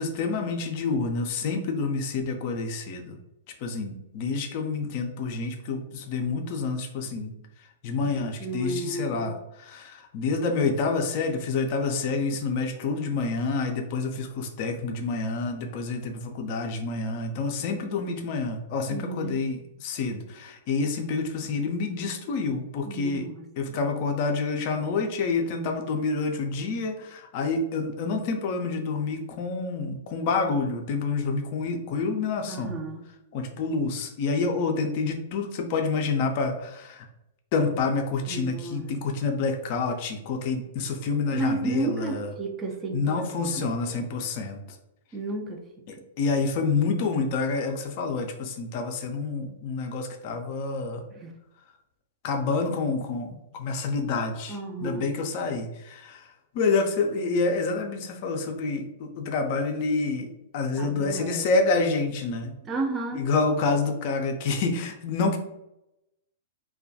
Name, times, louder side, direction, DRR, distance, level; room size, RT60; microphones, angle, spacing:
voice 1, 0.0-3.1 3.6-7.3 7.8-23.3 23.6-32.8 33.3-37.1 37.5-42.3 42.9-44.6 45.9-51.0 52.2-56.2 56.5-60.3 60.5-62.5 63.1-65.4, left 4 dB, 45° left, 4 dB, 0.4 m, -28 dB
voice 2, 8.4-9.3 18.9-19.4 22.8-23.5 32.5-33.0 38.3-38.9 41.3-44.0 45.1-45.6 51.1-51.3 54.5-55.1 60.8-61.5 62.7-63.2, right 3 dB, 25° right, 3 dB, 0.4 m, -32 dB
2.2 x 2.2 x 2.6 m, 0.88 s
figure-of-eight pair, 105°, 0 cm